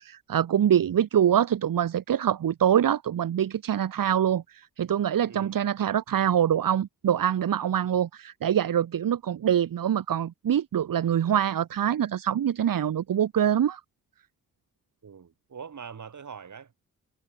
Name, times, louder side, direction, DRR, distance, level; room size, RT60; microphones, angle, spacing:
voice 1, 0.0-13.8, right 9 dB, 80° right, 1.5 m, -24 dB
voice 2, 5.3-5.6 15.0-16.9, right 6 dB, 60° right, 5.2 m, -43 dB
wide cardioid pair, 105°, 33 cm